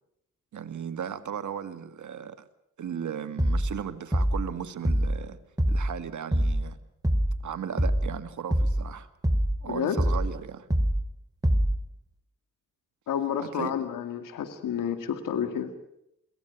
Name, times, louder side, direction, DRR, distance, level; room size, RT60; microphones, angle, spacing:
voice 1, 0.5-2.4 2.8-5.4 5.7-6.8 7.4-9.1 9.6-10.7 13.4-13.7, right 8 dB, 65° right, 1.8 m, -36 dB
sound 1, 3.4-3.8 4.1-4.5 4.8-5.2 5.6-6.0 6.3-6.7 7.0-7.4 7.8-8.2 8.5-8.9 9.2-9.6 10.0-10.3 10.7-11.1 11.4-11.8, equal, 10° right, 2.0 m, -24 dB
voice 2, 9.7-10.0 13.1-15.7, left 8 dB, 85° left, 2.1 m, -30 dB
23.0 x 17.0 x 9.3 m
supercardioid pair, 55°, 32 cm